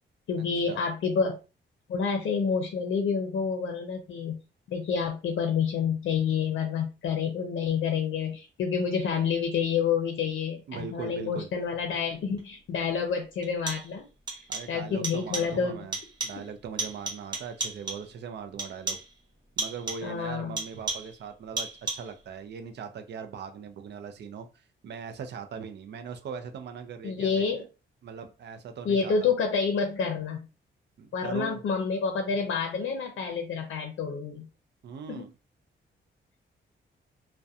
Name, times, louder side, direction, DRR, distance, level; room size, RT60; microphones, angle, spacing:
voice 1, 0.3-1.4 1.9-4.4 4.7-14.0 14.3-14.4 14.7-15.8 16.3-16.4 20.0-20.6 27.0-27.6 28.8-30.5 31.1-34.5 35.1-35.3, left 6 dB, 75° left, 4 dB, 0.5 m, -28 dB
voice 2, 10.7-11.5 14.5-16.0 16.2-19.0 19.6-27.4 28.0-29.3 31.0-31.6 34.8-35.3, right 6 dB, 60° right, 6 dB, 0.4 m, -40 dB
sound 1, 12.4-12.5 13.4-14.0 14.3-14.8 15.0-15.6 15.9-16.5 16.8-18.1 18.6-19.2 19.6-20.1 20.6-21.2 21.6-22.2, right 3 dB, 20° right, 0.8 m, -35 dB
2.6 x 2.1 x 2.3 m, 0.31 s
wide cardioid pair, 145°, 20 cm